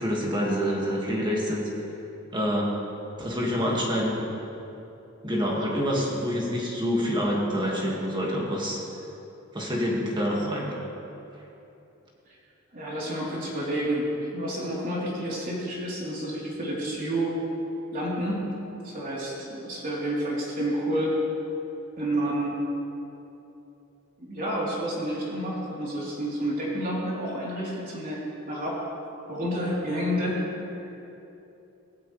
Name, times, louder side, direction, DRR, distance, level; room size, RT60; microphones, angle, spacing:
voice 1, 0.0-1.7 2.3-2.7 3.2-4.3 5.2-8.8 9.5-10.7, equal, 20° right, -3 dB, 2.1 m, -27 dB
voice 2, 12.7-17.3 17.9-18.4 18.8-21.1 22.0-22.6 24.2-28.2 28.5-28.8 29.3-30.7, right 1 dB, 40° right, -6 dB, 3.7 m, -29 dB
18.5 x 15.0 x 3.4 m, 2.9 s
head